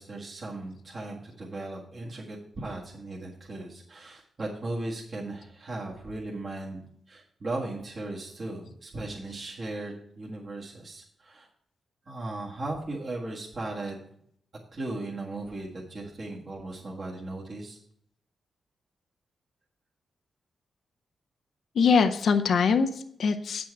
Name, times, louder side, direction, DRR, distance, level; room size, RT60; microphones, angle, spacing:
voice 1, 0.0-11.5 12.1-14.0 14.7-17.8, right 2 dB, 45° right, -5 dB, 1.7 m, -37 dB
voice 2, 21.7-23.7, left 5 dB, 70° left, 8 dB, 0.6 m, -23 dB
8.5 x 6.1 x 4.6 m, 0.69 s
cardioid pair, 80°, 0 cm